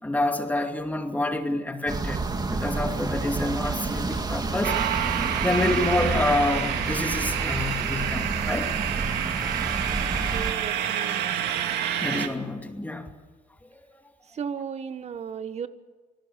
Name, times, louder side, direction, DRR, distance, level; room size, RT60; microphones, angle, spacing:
voice 1, 0.0-4.8 5.4-8.7 12.0-13.1, left 2 dB, 10° left, 5 dB, 2.5 m, -28 dB
sound 1, 1.9-10.5, right 3 dB, 25° right, 2.3 m, -30 dB
sound 2, 4.6-12.3, right 10 dB, 75° right, 2.4 m, -28 dB
voice 2, 10.3-11.2 14.3-15.7, right 7 dB, 40° right, 11 dB, 1.6 m, -34 dB
27.5 x 19.5 x 7.0 m, 1.3 s
cardioid pair, 110°, 17 cm